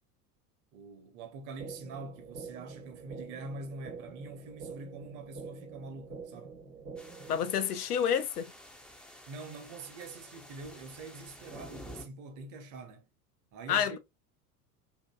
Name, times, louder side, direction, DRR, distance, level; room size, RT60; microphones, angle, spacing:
voice 1, 0.7-6.6 9.3-13.1 13.5-14.0, right 3 dB, 40° right, 0.8 m, -45 dB
sound 1, 1.6-7.6, right 4 dB, 90° right, 0.8 m, -46 dB
sound 2, 7.0-12.1, equal, 5° left, 0.4 m, -50 dB
voice 2, 7.3-8.4 13.7-14.0, left 8 dB, 75° left, 0.5 m, -29 dB
2.7 x 2.5 x 2.2 m
figure-of-eight pair, 75°, 47 cm